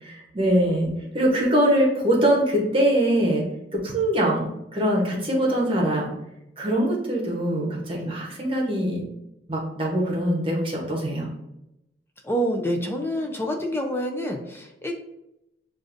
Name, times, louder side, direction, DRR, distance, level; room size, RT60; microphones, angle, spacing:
voice 1, 0.0-3.4 3.7-6.1 6.6-9.0 9.5-11.3, right 1 dB, 30° right, -2 dB, 0.9 m, -23 dB
voice 2, 12.2-14.9, equal, 15° left, 2 dB, 0.5 m, -27 dB
6.3 x 2.5 x 2.6 m, 0.88 s
head